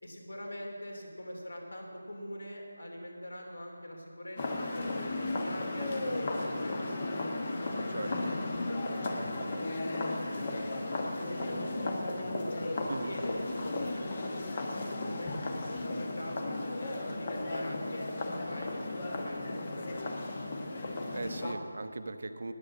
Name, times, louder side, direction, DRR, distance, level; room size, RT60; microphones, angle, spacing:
voice 1, 0.0-9.9 10.4-10.7 11.0-11.7 12.2-14.6 14.9-15.3 15.8-20.3, left 1 dB, 80° left, 1 dB, 3.0 m, -44 dB
sound 1, 4.4-21.5, left 2 dB, 25° left, 1.0 m, -35 dB
voice 2, 7.9-8.3 12.9-13.1 21.1-22.5, right 2 dB, 50° right, 9 dB, 0.8 m, -38 dB
9.7 x 9.7 x 7.5 m, 2.4 s
figure-of-eight pair, 175°, 0 cm